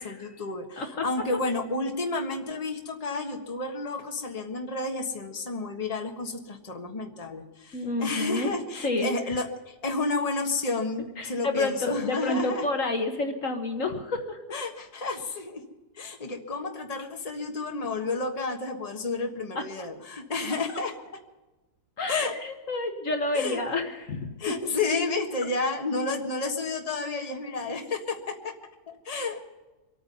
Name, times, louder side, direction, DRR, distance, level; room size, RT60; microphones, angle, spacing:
voice 1, 0.0-12.7 14.5-15.6 15.9-20.9 22.1-22.3 23.3-23.6 24.4-28.5 29.0-29.4, left 3 dB, 25° left, 2 dB, 1.4 m, -31 dB
voice 2, 7.7-8.5 8.8-9.1 11.2-14.4 19.5-19.9 22.0-24.6, left 2 dB, 55° left, 4 dB, 1.6 m, -29 dB
25.0 x 9.3 x 5.5 m, 1.1 s
omnidirectional pair, 1.7 m